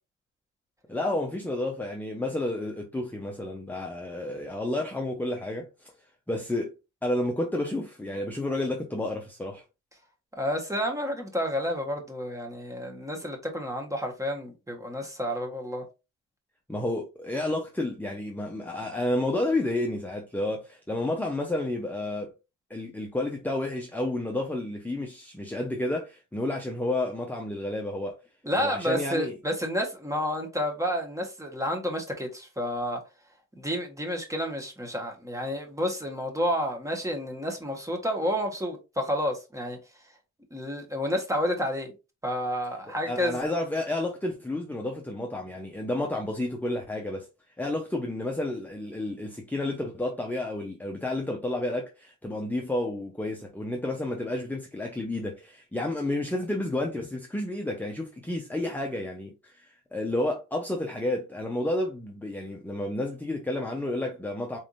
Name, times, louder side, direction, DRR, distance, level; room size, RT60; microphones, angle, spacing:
voice 1, 0.9-5.9 6.3-6.8 7.0-9.6 16.7-22.3 22.7-28.2 28.6-29.4 43.1-47.3 47.6-64.6, left 1 dB, 5° left, 0.8 m, -31 dB
voice 2, 10.4-15.8 28.4-33.0 33.6-39.8 40.5-41.9 42.2-43.4, equal, 10° right, 1.3 m, -30 dB
4.3 x 3.4 x 2.6 m
cardioid pair, 90°, 30 cm